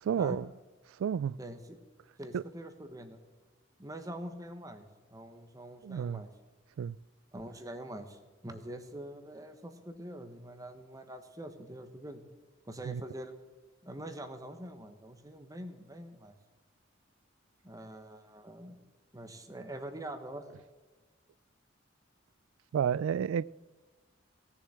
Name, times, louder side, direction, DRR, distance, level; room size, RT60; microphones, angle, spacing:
voice 1, 0.0-0.4 1.0-1.4 2.3-2.4 5.8-6.2 6.8-7.0 12.9-13.0 22.7-23.4, right 8 dB, 80° right, 0.3 m, -30 dB
voice 2, 1.4-1.8 2.2-3.2 3.8-6.3 7.3-12.2 12.7-13.3 13.8-16.3 17.6-18.8 19.1-20.6, right 1 dB, 15° right, 1.2 m, -44 dB
17.0 x 7.1 x 7.7 m
head